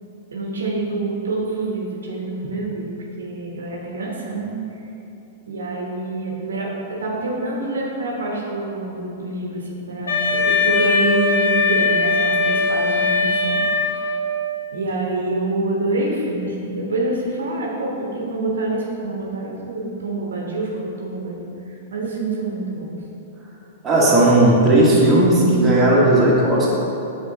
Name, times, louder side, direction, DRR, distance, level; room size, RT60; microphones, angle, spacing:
voice 1, 0.3-2.9 3.2-4.5 5.5-14.2 14.7-23.0, right 2 dB, 70° right, -3 dB, 1.0 m, -26 dB
Wind instrument woodwind instrument, 10.1-14.3, left 3 dB, 75° left, 1.0 m, -19 dB
voice 2, 23.8-26.7, right 1 dB, 15° right, -6 dB, 1.4 m, -15 dB
8.4 x 3.9 x 2.8 m, 2.9 s
figure-of-eight pair, 100°, 0 cm